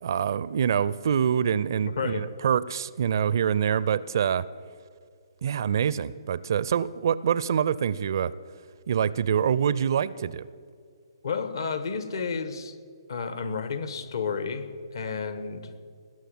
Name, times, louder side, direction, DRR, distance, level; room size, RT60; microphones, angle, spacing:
voice 1, 0.0-4.5 5.4-8.3 8.9-10.5, right 8 dB, 50° right, 19 dB, 0.5 m, -25 dB
voice 2, 1.8-2.2 11.2-12.8 13.1-14.7 14.9-15.7, left 5 dB, 60° left, 10 dB, 1.4 m, -31 dB
19.0 x 6.5 x 9.3 m, 2.2 s
figure-of-eight pair, 130°, 2 cm